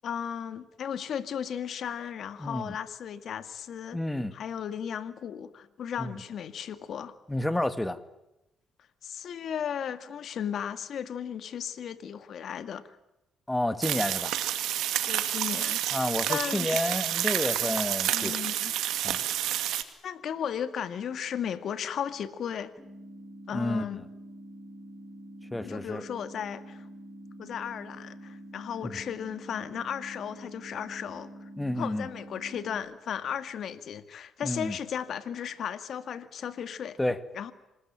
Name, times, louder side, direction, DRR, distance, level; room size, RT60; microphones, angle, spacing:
voice 1, 0.0-4.0 4.3-7.2 9.0-12.8 15.1-15.8 16.3-16.7 18.1-18.7 19.4-19.6 20.0-22.7 23.5-24.1 25.6-26.9 27.4-31.5 31.8-37.0 37.3-37.5, left 8 dB, 65° left, 12 dB, 2.2 m, -35 dB
voice 2, 2.4-2.8 3.9-4.3 6.0-6.1 7.3-8.0 13.5-14.4 15.9-18.4 19.0-19.2 23.5-23.8 25.5-26.0 28.8-29.0 31.6-32.1 34.4-34.8 37.0-37.2, left 1 dB, 10° left, 13 dB, 2.0 m, -30 dB
sound 1, 13.8-19.8, right 12 dB, 85° right, 2.3 m, -29 dB
sound 2, 22.8-32.8, right 1 dB, 15° right, 7.2 m, -46 dB
26.5 x 20.0 x 9.1 m, 0.92 s
cardioid pair, 90°, 0 cm